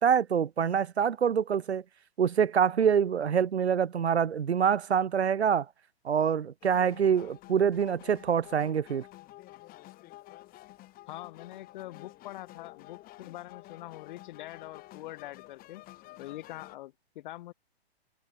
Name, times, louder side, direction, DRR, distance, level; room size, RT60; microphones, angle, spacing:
voice 1, 0.0-1.8 2.2-5.7 6.0-9.0, right 7 dB, 90° right, 0.9 m, -25 dB
sound 1, 6.6-16.8, left 17 dB, 30° left, 3.2 m, -51 dB
voice 2, 11.1-15.8 16.2-17.5, left 16 dB, 50° left, 2.1 m, -44 dB
hypercardioid pair, 125°, 32 cm